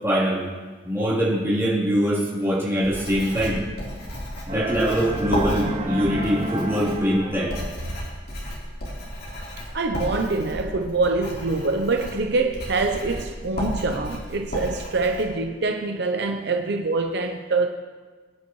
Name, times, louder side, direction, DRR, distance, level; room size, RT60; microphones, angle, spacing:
voice 1, 0.0-0.4 0.8-3.6 4.5-7.5, equal, 15° right, 3.3 m, -23 dB
Writing, 2.8-15.2, equal, 55° left, 3.6 m, -33 dB
sound 1, 4.5-7.8, right 1 dB, 35° right, 1.0 m, -31 dB
voice 2, 9.7-17.7, right 3 dB, 65° right, 0.7 m, -25 dB
22.0 x 10.0 x 3.1 m
head